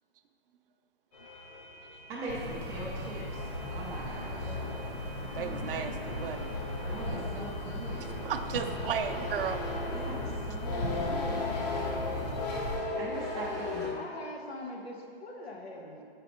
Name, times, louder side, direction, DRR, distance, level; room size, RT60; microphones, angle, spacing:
sound 1, 1.1-13.9, left 3 dB, 45° left, 1.0 m, -38 dB
voice 1, 2.1-3.4 3.7-4.5 6.8-8.1 9.9-11.6 13.0-14.0, right 2 dB, 10° right, -5 dB, 0.4 m, -41 dB
sound 2, 2.3-12.8, left 1 dB, 60° left, 1.4 m, -37 dB
voice 2, 5.4-6.6 8.2-9.6 10.3-10.4, right 8 dB, 65° right, 7 dB, 0.5 m, -34 dB
voice 3, 13.9-16.0, left 1 dB, 90° left, 1 dB, 1.1 m, -42 dB
6.9 x 5.1 x 3.0 m, 2.2 s
hypercardioid pair, 150°, 30 cm